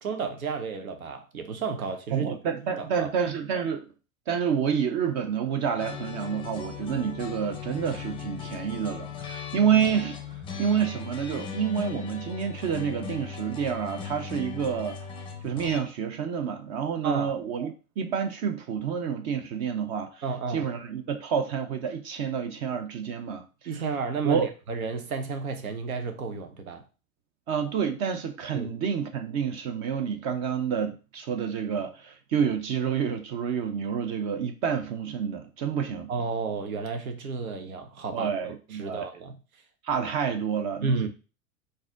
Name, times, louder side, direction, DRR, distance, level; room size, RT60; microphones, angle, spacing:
voice 1, 0.0-2.3 2.8-3.1 17.0-17.4 20.2-20.7 23.7-26.8 28.5-28.7 36.1-38.3 38.7-39.4 40.8-41.1, right 4 dB, 85° right, 0.7 m, -32 dB
voice 2, 2.1-3.9 4.3-10.2 10.6-15.0 15.4-20.2 20.5-23.4 24.2-24.5 27.5-36.1 38.1-39.1 39.8-41.1, right 7 dB, 30° right, 0.5 m, -28 dB
sound 1, 5.8-15.8, left 6 dB, 10° left, 0.6 m, -38 dB
4.0 x 2.6 x 3.7 m
figure-of-eight pair, 95°, 42 cm